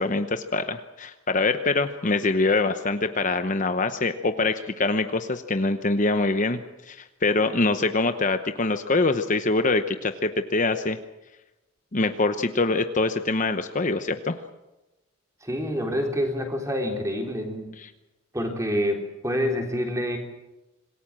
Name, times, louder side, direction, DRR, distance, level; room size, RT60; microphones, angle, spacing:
voice 1, 0.0-11.0 11.9-14.4 17.8-17.9, left 3 dB, 35° left, 8 dB, 0.9 m, -24 dB
voice 2, 15.4-17.7 18.3-20.2, equal, 15° right, 2 dB, 3.8 m, -27 dB
26.5 x 19.5 x 7.6 m, 1.0 s
head